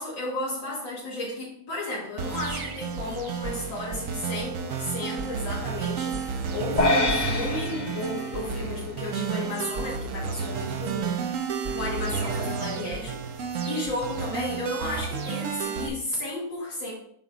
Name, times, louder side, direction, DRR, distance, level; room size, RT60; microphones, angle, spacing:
voice 1, 0.0-11.2 11.7-13.2 13.6-16.9, left 2 dB, 85° left, -9 dB, 3.3 m, -33 dB
sound 1, 2.2-15.9, right 6 dB, 60° right, 0.9 m, -31 dB
sound 2, 6.8-9.3, left 2 dB, 35° left, 0.7 m, -27 dB
9.0 x 3.0 x 4.9 m, 0.68 s
omnidirectional pair, 2.0 m